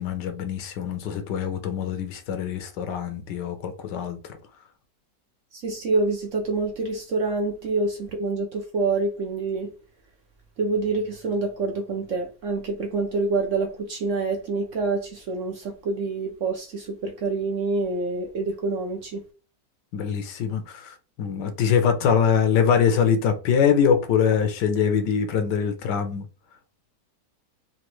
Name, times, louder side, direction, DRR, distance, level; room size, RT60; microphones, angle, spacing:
voice 1, 0.0-4.2 19.9-26.2, left 7 dB, 80° left, 1.4 m, -23 dB
voice 2, 5.5-9.7 10.6-19.2, right 3 dB, 60° right, 0.9 m, -27 dB
5.1 x 2.6 x 3.1 m
omnidirectional pair, 1.8 m